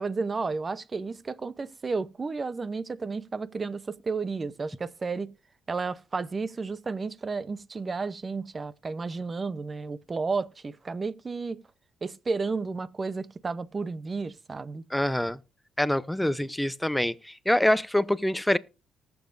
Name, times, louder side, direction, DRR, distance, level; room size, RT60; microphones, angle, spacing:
voice 1, 0.0-5.3 5.7-11.6 12.0-14.8, right 4 dB, 30° right, 0.7 m, -32 dB
voice 2, 14.9-15.4 15.8-18.6, left 1 dB, 5° left, 0.6 m, -25 dB
19.5 x 7.1 x 2.6 m
cardioid pair, 90°, 0 cm